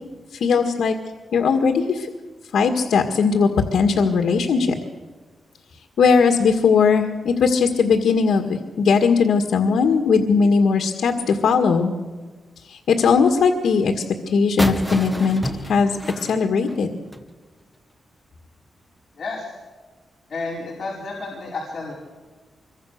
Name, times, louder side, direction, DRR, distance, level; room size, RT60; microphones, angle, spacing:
voice 1, 0.4-1.0 1.3-2.1 2.5-4.7 6.0-11.9 12.7-16.9, left 5 dB, 75° left, 4 dB, 1.9 m, -19 dB
sound 1, 14.6-17.3, equal, 5° right, 1.5 m, -29 dB
voice 2, 19.2-19.5 20.3-21.9, left 3 dB, 40° left, -4 dB, 5.0 m, -31 dB
25.5 x 23.5 x 6.7 m, 1.3 s
wide cardioid pair, 165°, 0 cm